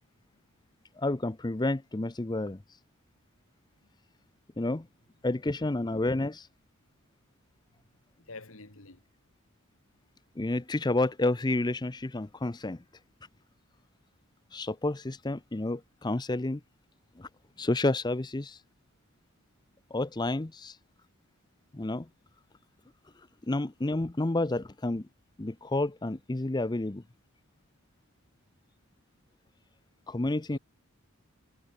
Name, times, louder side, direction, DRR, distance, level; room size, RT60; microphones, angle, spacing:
voice 1, 1.0-2.6 4.6-4.9 5.2-6.5 10.4-12.8 14.5-16.6 17.2-17.3 17.6-18.6 19.9-20.8 21.7-22.1 23.5-25.1 25.4-27.0 30.1-30.6, left 2 dB, 20° left, 0.6 m, -30 dB
voice 2, 8.2-9.0 30.5-30.6, left 3 dB, 65° left, 2.7 m, -47 dB
head